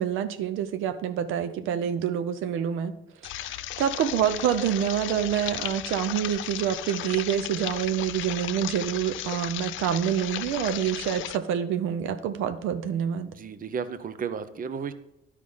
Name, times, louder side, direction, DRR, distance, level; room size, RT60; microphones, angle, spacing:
voice 1, 0.0-2.9 3.2-13.3, right 9 dB, 90° right, 10 dB, 0.6 m, -27 dB
sound 1, 3.2-11.4, left 14 dB, 75° left, 0.4 m, -35 dB
voice 2, 13.3-14.9, right 6 dB, 45° right, 12 dB, 0.7 m, -33 dB
10.5 x 5.0 x 5.4 m, 0.84 s
cardioid pair, 90°, 20 cm